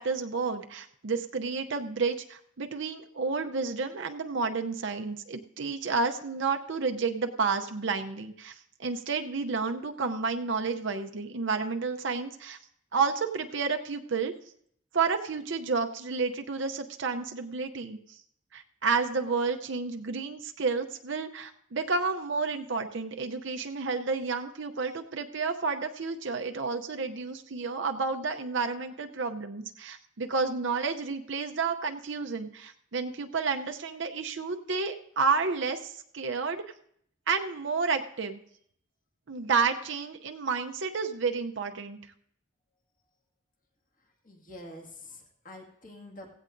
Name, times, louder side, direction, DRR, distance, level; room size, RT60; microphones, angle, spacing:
voice 1, 0.0-12.6 12.9-14.3 14.9-18.2 18.5-36.6 37.3-38.4 39.3-42.0, right 4 dB, 65° right, 5 dB, 0.7 m, -31 dB
voice 2, 44.2-46.3, left 1 dB, 40° left, 0 dB, 2.0 m, -46 dB
16.5 x 16.0 x 2.6 m, 0.67 s
head